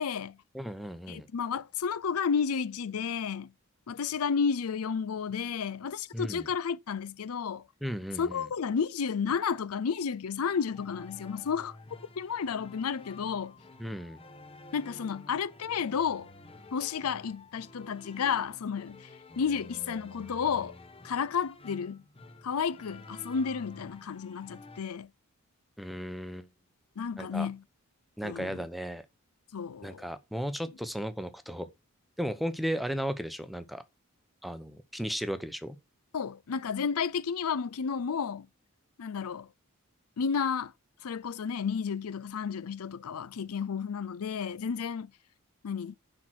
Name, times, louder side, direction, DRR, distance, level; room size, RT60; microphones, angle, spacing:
voice 1, 0.0-0.4 1.1-3.5 3.9-7.7 8.2-11.8 12.2-13.5 14.7-16.3 16.7-19.1 19.4-20.8 21.0-22.0 22.4-25.1 27.0-27.6 28.2-28.6 29.5-30.0 36.1-38.5 39.0-39.5 40.2-40.7 41.0-45.1 45.6-46.0, left 6 dB, 75° left, 0.5 m, -32 dB
voice 2, 0.5-1.3 6.1-6.5 7.8-8.5 13.8-14.2 25.8-26.5 27.2-27.5 28.2-29.1 29.8-31.7 32.2-33.8 34.4-35.8, equal, ahead, 0.8 m, -35 dB
sound 1, 10.5-24.8, left 2 dB, 25° left, 1.0 m, -50 dB
10.5 x 4.5 x 6.2 m
head